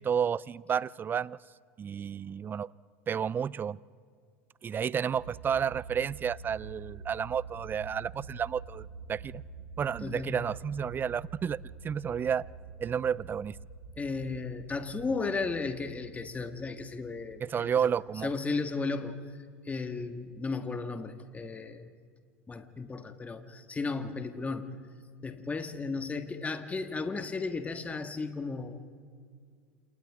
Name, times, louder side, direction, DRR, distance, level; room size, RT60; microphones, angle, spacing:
voice 1, 0.0-1.4 1.8-2.7 3.1-3.8 4.6-9.4 9.8-12.5 12.8-13.6 17.4-18.3, right 7 dB, 25° right, 23 dB, 0.5 m, -31 dB
sound 1, 5.1-18.3, right 4 dB, 85° right, 2.3 m, -47 dB
voice 2, 10.0-10.5 14.0-17.7 18.2-19.2 19.6-21.9 22.5-24.7 25.2-28.8, left 4 dB, 20° left, 8 dB, 1.6 m, -35 dB
28.5 x 28.5 x 3.6 m, 2.1 s
hypercardioid pair, 85°, 8 cm